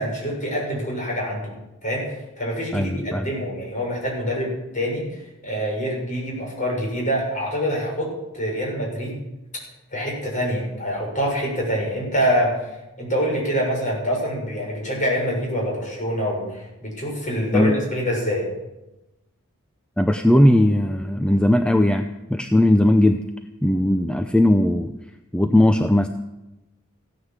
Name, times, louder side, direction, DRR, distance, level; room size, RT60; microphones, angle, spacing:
voice 1, 0.0-1.5 1.8-8.1 8.3-9.2 9.9-12.5 13.0-18.4, equal, 35° left, -2 dB, 6.4 m, -25 dB
voice 2, 2.7-3.3 17.5-17.7 20.0-23.2 23.6-24.9 25.3-26.1, left 1 dB, 5° left, 6 dB, 0.6 m, -18 dB
16.0 x 10.0 x 7.4 m, 0.99 s
head